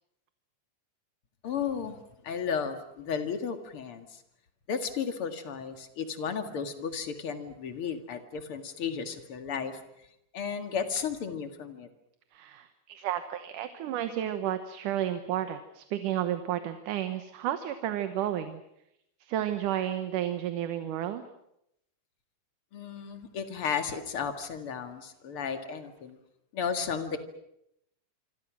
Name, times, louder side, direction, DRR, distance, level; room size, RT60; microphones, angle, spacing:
voice 1, 1.4-4.2 4.7-9.8 10.3-11.9 22.7-26.2 26.5-27.2, left 6 dB, 45° left, 7 dB, 2.6 m, -34 dB
voice 2, 12.3-18.6 19.2-21.2, right 11 dB, 80° right, 9 dB, 2.7 m, -32 dB
26.5 x 25.5 x 6.2 m, 0.79 s
omnidirectional pair, 3.6 m